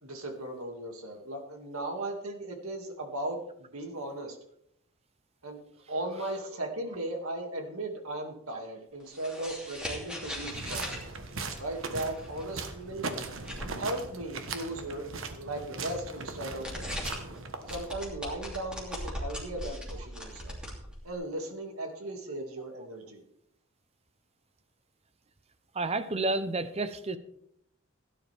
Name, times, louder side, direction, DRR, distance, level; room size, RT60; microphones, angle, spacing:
voice 1, 0.0-4.4 5.4-5.6 5.9-11.0 11.6-13.1 13.8-17.0 17.7-20.6 21.0-23.2, right 1 dB, 80° right, 3 dB, 2.4 m, -37 dB
sound 1, 9.0-13.9 16.5-17.4 17.7-21.1, equal, 5° right, 2.9 m, -40 dB
sound 2, 10.4-18.1, right 3 dB, 65° right, 1.4 m, -39 dB
voice 2, 25.7-27.2, right 2 dB, 30° right, 12 dB, 0.8 m, -30 dB
16.5 x 10.0 x 3.5 m, 0.73 s
head